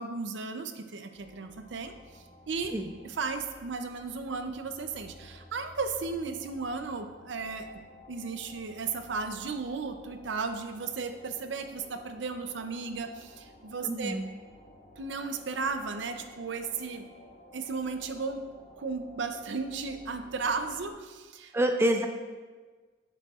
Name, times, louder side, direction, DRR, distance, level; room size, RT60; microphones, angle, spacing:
voice 1, 0.0-2.7 3.0-7.7 8.1-14.2 15.0-17.1 17.5-18.4 18.8-21.5, right 4 dB, 70° right, 8 dB, 0.5 m, -35 dB
sound 1, 1.1-20.9, left 1 dB, 40° left, 1.6 m, -53 dB
voice 2, 13.8-14.2 21.5-22.1, right 1 dB, 15° right, 5 dB, 0.3 m, -27 dB
8.2 x 6.8 x 2.4 m, 1.4 s
head